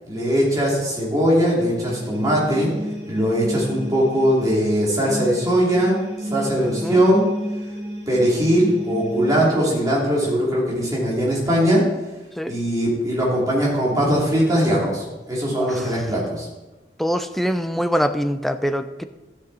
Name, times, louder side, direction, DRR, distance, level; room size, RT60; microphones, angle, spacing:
voice 1, 0.1-2.7 3.1-7.2 8.1-11.8 12.5-16.5, equal, 20° right, -5 dB, 3.1 m, -20 dB
sound 1, 1.6-9.4, equal, 70° right, 2.4 m, -32 dB
voice 2, 6.6-7.0 12.4-12.5 15.5-16.0 17.0-19.1, equal, ahead, 9 dB, 0.4 m, -24 dB
13.0 x 6.5 x 4.2 m, 1.1 s
head